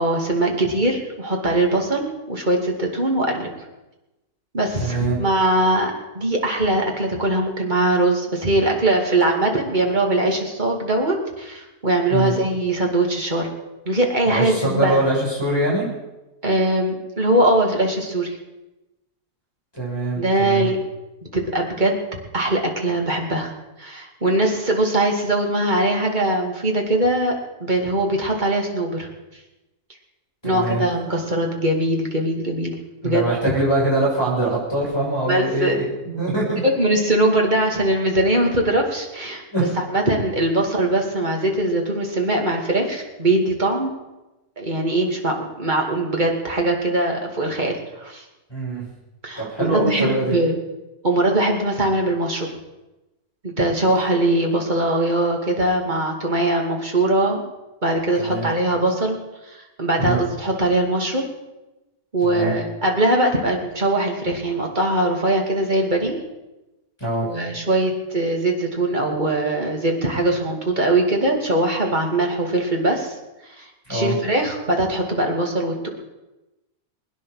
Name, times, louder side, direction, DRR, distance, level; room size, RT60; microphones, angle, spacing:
voice 1, 0.0-3.5 4.5-13.5 13.9-15.0 16.4-18.4 20.2-20.8 21.3-22.0 22.3-23.5 23.8-27.3 27.6-29.1 30.4-32.8 33.0-33.2 35.2-35.8 36.6-39.4 39.8-43.9 44.6-48.2 49.2-50.6 51.0-52.5 53.6-57.4 57.8-59.2 59.4-61.3 62.1-66.2 67.2-73.1 73.4-75.9, right 1 dB, 30° right, 1 dB, 2.6 m, -21 dB
voice 2, 4.8-5.2 12.1-12.3 14.3-15.9 19.7-20.7 30.4-30.9 33.0-36.6 39.5-39.6 48.5-48.8 49.4-50.3 58.2-58.5 60.0-60.2 62.2-62.5 67.0-67.3 73.9-74.2, right 2 dB, 15° left, -8 dB, 6.8 m, -23 dB
21.5 x 10.0 x 6.5 m, 1.0 s
omnidirectional pair, 1.6 m